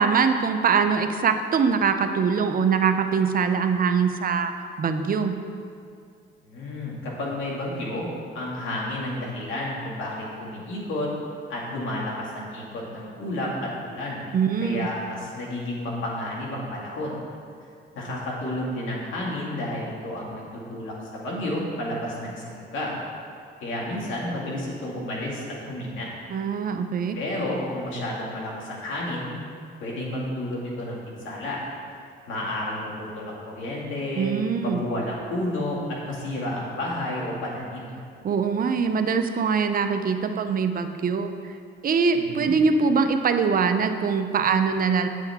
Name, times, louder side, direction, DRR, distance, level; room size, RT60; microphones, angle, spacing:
voice 1, 0.0-4.5 4.8-5.3 14.3-14.9 26.3-27.2 34.2-34.8 38.2-41.3 41.8-45.1, right 5 dB, 45° right, 7 dB, 0.6 m, -23 dB
voice 2, 6.5-8.1 8.3-11.1 11.5-14.3 14.6-17.2 17.9-23.0 23.6-26.1 27.1-29.3 29.8-31.6 32.3-34.3 34.6-37.9 42.1-42.5, left 1 dB, 80° left, -4 dB, 2.2 m, -31 dB
9.0 x 7.5 x 3.6 m, 2.3 s
cardioid pair, 90°, 20 cm